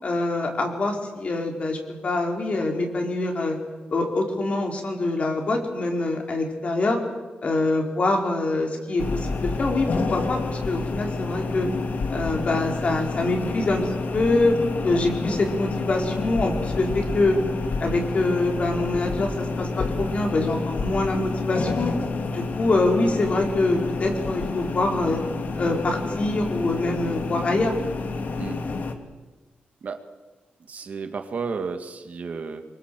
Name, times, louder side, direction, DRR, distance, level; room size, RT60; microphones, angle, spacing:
voice 1, 0.0-3.6 3.9-7.0 7.4-11.7 12.1-14.6 14.8-17.4 17.8-21.9 22.3-25.2 25.6-27.7, left 2 dB, 40° left, 2 dB, 4.4 m, -25 dB
sound 1, 9.0-28.9, left 3 dB, 60° left, 2.3 m, -29 dB
voice 2, 30.7-32.6, right 5 dB, 50° right, 6 dB, 2.1 m, -32 dB
25.5 x 24.0 x 7.7 m, 1.2 s
wide cardioid pair, 155°, 3 cm